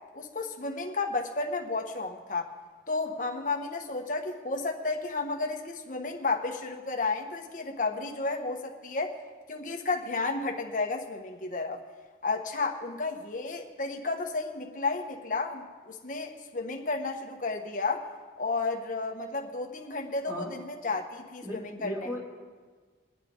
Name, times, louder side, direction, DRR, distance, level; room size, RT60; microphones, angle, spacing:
voice 1, 0.1-2.5 2.9-9.2 9.5-11.8 12.2-18.1 18.4-22.1, left 3 dB, 45° left, 2 dB, 1.3 m, -32 dB
voice 2, 21.4-22.2, equal, 15° right, -5 dB, 3.2 m, -36 dB
23.5 x 9.1 x 3.8 m, 1.5 s
head